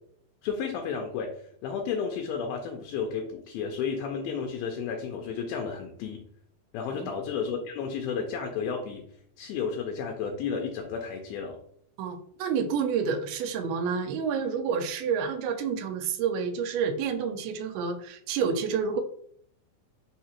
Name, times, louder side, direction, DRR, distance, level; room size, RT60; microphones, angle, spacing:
voice 1, 0.4-6.2 6.7-9.0 9.4-11.6, left 6 dB, 80° left, 3 dB, 2.2 m, -32 dB
voice 2, 12.0-19.0, right 6 dB, 90° right, 7 dB, 2.5 m, -29 dB
5.7 x 2.7 x 2.9 m, 0.66 s
omnidirectional pair, 4.4 m